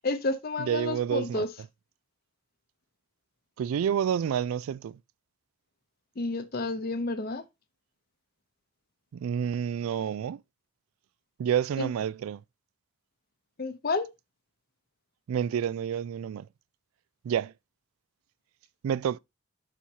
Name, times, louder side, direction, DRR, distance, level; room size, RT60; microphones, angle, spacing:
voice 1, 0.0-1.5 6.2-7.4 11.8-11.9 13.6-14.1, left 2 dB, 45° left, 0.7 m, -30 dB
voice 2, 0.6-1.5 3.6-5.0 9.1-10.4 11.4-12.4 15.3-16.4 17.2-17.5 18.8-19.2, right 8 dB, 90° right, 0.3 m, -29 dB
12.0 x 4.3 x 2.7 m
head